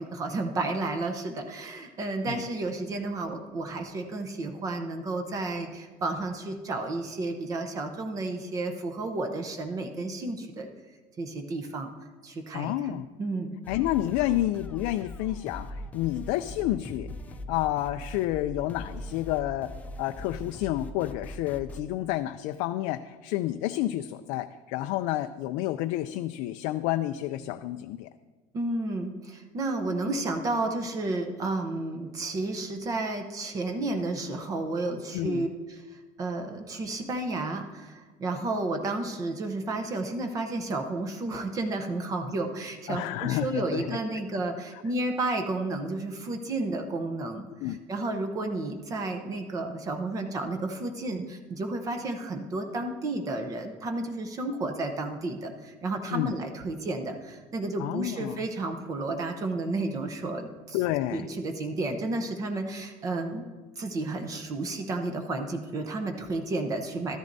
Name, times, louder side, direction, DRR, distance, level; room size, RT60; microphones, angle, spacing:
voice 1, 0.0-10.7 11.2-11.9 12.2-13.6 28.5-60.8 61.1-63.4 63.8-67.2, right 2 dB, 25° right, 5 dB, 0.7 m, -32 dB
voice 2, 12.5-13.1 13.7-17.1 17.5-19.7 20.0-28.1 35.1-35.4 42.9-44.0 47.6-47.8 56.1-56.3 57.8-58.4 60.7-61.3, left 14 dB, 75° left, 9 dB, 0.4 m, -30 dB
sound 1, 13.6-21.8, left 1 dB, 10° left, 0.4 m, -41 dB
13.5 x 13.0 x 2.7 m, 1.3 s
cardioid pair, 175°, 13 cm